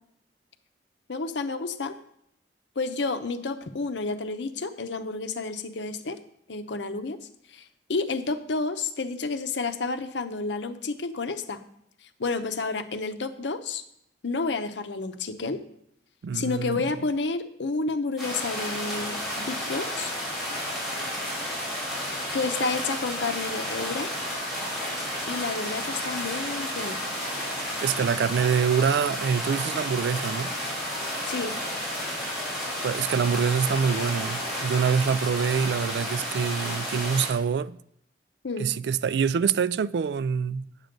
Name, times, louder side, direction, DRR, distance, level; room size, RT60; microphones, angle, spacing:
voice 1, 1.1-1.9 2.8-6.2 6.5-7.2 7.5-11.6 12.2-13.8 14.2-15.6 16.3-20.1 22.3-24.1 25.3-27.0 31.3-31.6 38.4-38.7, left 3 dB, 85° left, 0.7 m, -30 dB
voice 2, 16.2-16.8 27.8-30.5 32.8-37.8 38.6-40.7, right 6 dB, 65° right, 0.3 m, -25 dB
sound 1, 18.2-37.3, equal, ahead, 4.2 m, -32 dB
Wind instrument woodwind instrument, 30.9-32.5 32.8-35.6, left 1 dB, 30° right, 4.7 m, -50 dB
9.1 x 7.4 x 5.2 m
head